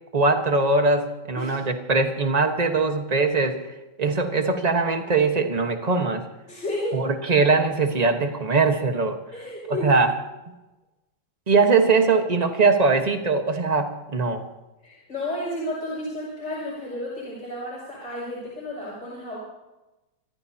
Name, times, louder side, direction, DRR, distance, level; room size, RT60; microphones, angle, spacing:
voice 1, 0.1-3.6 4.0-6.2 6.9-9.2 9.8-10.1 11.5-14.5, right 4 dB, 25° right, 5 dB, 1.2 m, -21 dB
voice 2, 6.5-7.0 9.3-9.9 14.8-19.4, left 1 dB, 40° left, -8 dB, 7.1 m, -32 dB
28.5 x 14.5 x 2.8 m, 1.1 s
omnidirectional pair, 2.0 m